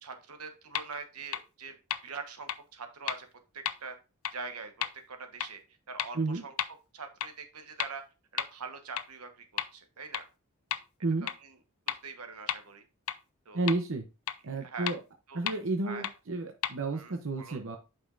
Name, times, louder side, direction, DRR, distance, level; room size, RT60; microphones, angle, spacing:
voice 1, 0.0-1.8 2.0-3.3 3.5-4.0 4.3-5.6 5.9-6.5 6.9-8.0 8.3-10.3 11.2-11.5 11.9-12.9 13.4-13.7 14.6-14.9 15.3-15.4 15.8-16.1 16.9-17.6, right 4 dB, 90° right, 7 dB, 1.2 m, -43 dB
sound 1, 0.7-0.8 1.3-1.4 1.9-2.0 2.5-2.6 3.1-3.2 3.7-3.8 4.2-4.3 4.8-4.9 5.4-5.5 6.0-6.1 6.6-6.7 7.2-7.3 7.8-7.9 8.4-8.5 9.0-9.1 9.6-9.7 10.1-10.2 10.7-10.8 11.3-11.4 11.9-12.0 12.5-12.6 13.1-13.2 13.7-13.8 14.3-14.4 14.9-15.0 15.5-15.6 16.0-16.1 16.6-16.7, left 10 dB, 70° left, 0.5 m, -31 dB
voice 2, 13.5-14.1 14.4-15.0 15.3-17.8, right 3 dB, 60° right, 5 dB, 0.7 m, -31 dB
8.4 x 5.4 x 2.5 m, 0.29 s
head